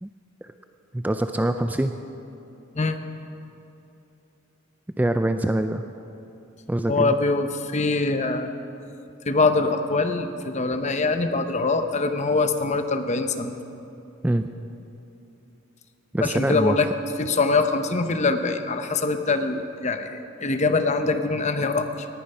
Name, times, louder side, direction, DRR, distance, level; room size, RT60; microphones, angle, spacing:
voice 1, 0.9-1.9 5.0-5.8 6.7-7.1 14.2-14.5 16.1-16.8, right 1 dB, 10° right, 8 dB, 0.3 m, -24 dB
voice 2, 6.9-8.5 9.3-13.5 16.2-16.9 17.2-22.1, left 3 dB, 35° left, 8 dB, 0.8 m, -23 dB
18.5 x 10.5 x 5.5 m, 2.8 s
head